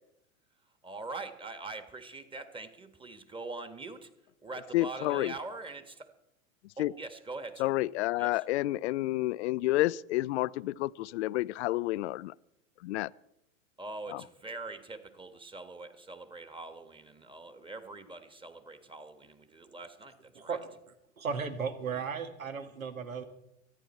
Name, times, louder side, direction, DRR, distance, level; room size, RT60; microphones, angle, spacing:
voice 1, 0.8-4.1 4.4-6.1 6.8-7.7 8.2-8.4 13.8-20.6, right 3 dB, 10° right, 1.6 m, -43 dB
voice 2, 4.7-5.3 6.8-6.9 7.6-12.3 12.8-13.1 14.1-14.2, left 17 dB, 55° left, 0.5 m, -30 dB
voice 3, 21.2-23.2, right 5 dB, 85° right, 1.8 m, -35 dB
24.5 x 10.0 x 4.4 m
hypercardioid pair, 100°, 40 cm